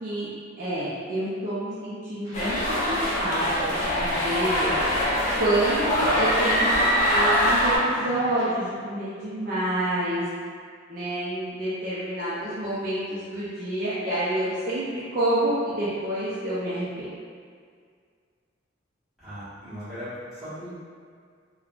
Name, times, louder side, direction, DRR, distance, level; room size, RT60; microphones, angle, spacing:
voice 1, 0.6-5.1 5.4-10.3 10.9-17.1, right 1 dB, 45° right, -11 dB, 0.5 m, -28 dB
sound 1, 2.2-8.5, equal, 15° right, 1.0 m, -39 dB
sound 2, 2.3-7.8, equal, 40° left, 0.6 m, -23 dB
voice 2, 19.2-20.8, equal, ahead, -18 dB, 1.4 m, -38 dB
3.5 x 2.2 x 2.4 m, 2.1 s
head